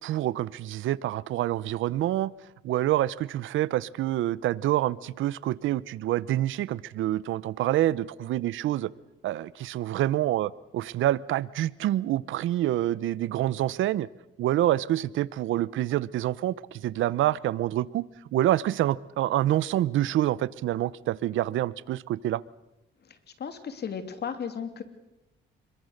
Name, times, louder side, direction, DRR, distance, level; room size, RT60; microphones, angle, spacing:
voice 1, 0.0-2.3 2.6-8.9 9.2-14.1 14.4-18.0 18.3-22.4, right 13 dB, 80° right, 20 dB, 0.8 m, -27 dB
voice 2, 23.0-24.8, left 7 dB, 55° left, 9 dB, 2.9 m, -35 dB
26.0 x 22.5 x 6.6 m, 0.96 s
cardioid pair, 90°, 20 cm